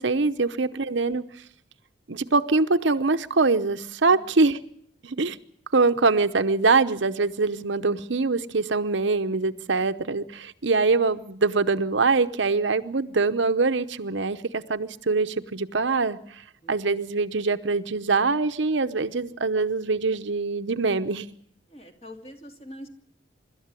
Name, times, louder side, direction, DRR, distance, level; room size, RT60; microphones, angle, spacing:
voice 1, 0.0-1.2 2.1-4.6 5.0-5.4 5.7-16.4 16.7-21.3, right 3 dB, 70° right, 10 dB, 0.9 m, -23 dB
voice 2, 16.6-17.0 19.1-19.4 21.7-22.9, equal, 30° left, 4 dB, 2.7 m, -46 dB
25.0 x 13.0 x 9.7 m, 0.68 s
head